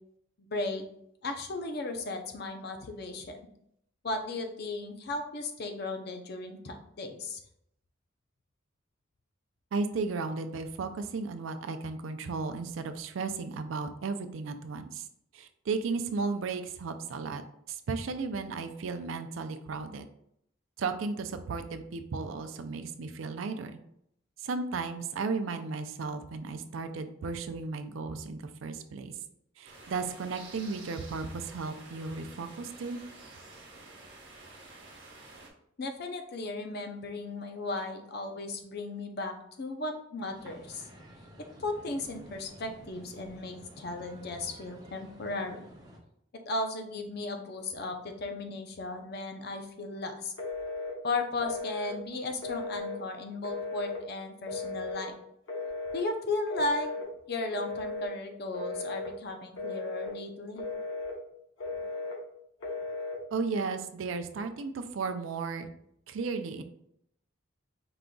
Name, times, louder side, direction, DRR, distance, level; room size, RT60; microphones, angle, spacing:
voice 1, 0.4-0.8 1.2-3.4 4.0-7.4 35.8-40.9 41.6-45.7 46.5-50.3 51.0-55.1 55.9-56.9 57.3-60.6, left 2 dB, 50° left, 5 dB, 0.6 m, -35 dB
voice 2, 9.7-15.1 15.3-17.4 17.7-20.1 20.8-23.7 24.4-29.1 29.6-33.0 63.3-65.7 66.1-66.6, right 4 dB, 75° right, 8 dB, 0.4 m, -34 dB
sound 1, 29.6-35.5, right 3 dB, 55° right, 1.0 m, -50 dB
sound 2, 40.3-46.0, right 1 dB, 20° right, 0.8 m, -52 dB
Telephone, 50.4-51.0 51.4-52.0 52.4-53.0 53.4-54.0 54.5-55.0 55.5-56.1 56.5-57.1 57.5-58.1 58.5-59.1 59.6-60.1 60.6-61.2 61.6-62.2 62.6-63.2, left 3 dB, 70° left, 1.0 m, -36 dB
4.8 x 3.8 x 2.3 m, 0.73 s
head